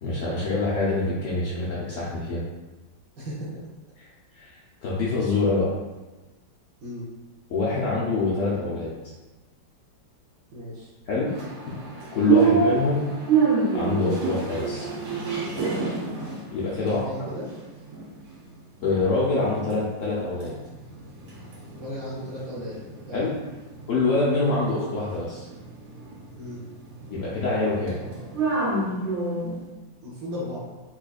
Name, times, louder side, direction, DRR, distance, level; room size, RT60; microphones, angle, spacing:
voice 1, 0.0-2.4 4.0-5.7 7.5-8.9 11.1-11.3 11.6-11.8 12.1-13.1 13.7-14.9 16.5-17.0 18.8-20.6 23.1-23.3 23.9-25.5 27.1-28.0, left 3 dB, 75° left, -7 dB, 0.7 m, -25 dB
voice 2, 3.2-3.6 6.8-7.0 10.5-10.9 12.3-12.5 16.8-17.5 21.7-22.8 23.1-23.3 26.4-26.6 30.0-30.6, left 1 dB, 60° right, -6 dB, 1.0 m, -35 dB
sound 1, 11.3-18.4 18.8-19.8 20.0-29.6, right 5 dB, 75° right, 1.5 m, -28 dB
4.4 x 2.4 x 2.3 m, 1.2 s
omnidirectional pair, 2.0 m